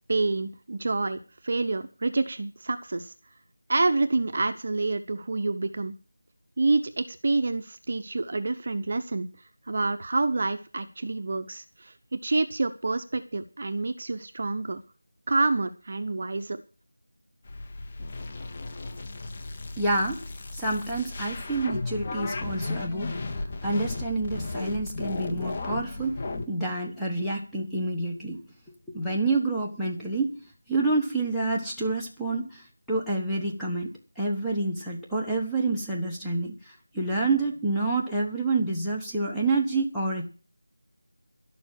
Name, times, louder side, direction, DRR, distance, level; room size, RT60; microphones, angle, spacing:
voice 1, 0.1-1.2 1.4-3.1 3.7-5.9 6.6-9.3 9.7-14.8 15.3-16.6, right 3 dB, 35° right, 9 dB, 0.9 m, -27 dB
sound 1, 17.5-26.5, left 3 dB, 20° left, 0.9 m, -35 dB
voice 2, 19.8-20.3 20.5-23.2 23.6-26.2 26.4-28.4 28.9-30.4 30.7-40.3, right 2 dB, ahead, -6 dB, 1.1 m, -28 dB
11.5 x 7.1 x 8.8 m, 0.34 s
figure-of-eight pair, 175°, 0 cm